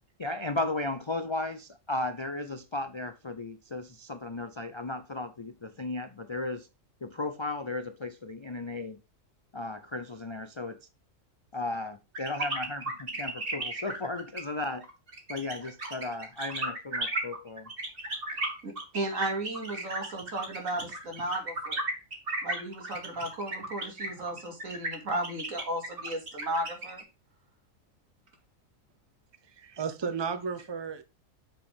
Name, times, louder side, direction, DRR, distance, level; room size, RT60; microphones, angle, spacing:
voice 1, 0.2-6.7 7.0-9.0 9.5-10.8 11.5-14.9 15.3-17.7, left 2 dB, 40° left, 0.4 m, -35 dB
sound 1, 12.1-27.0, right 2 dB, 45° right, 2.3 m, -34 dB
voice 2, 18.6-21.8 22.4-27.0, right 1 dB, 85° right, 2.8 m, -34 dB
voice 3, 29.4-31.0, right 6 dB, 25° right, 0.8 m, -34 dB
7.7 x 6.7 x 3.6 m
omnidirectional pair, 1.4 m